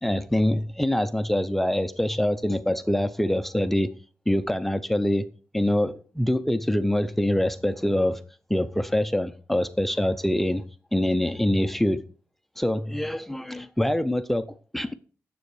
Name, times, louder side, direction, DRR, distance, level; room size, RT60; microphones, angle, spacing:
voice 1, 0.0-3.9 4.3-5.3 5.5-8.2 8.5-10.6 10.9-12.0 12.6-14.9, left 1 dB, 5° left, 0.5 m, -24 dB
9.8 x 7.6 x 4.7 m
wide cardioid pair, 180°, 5 cm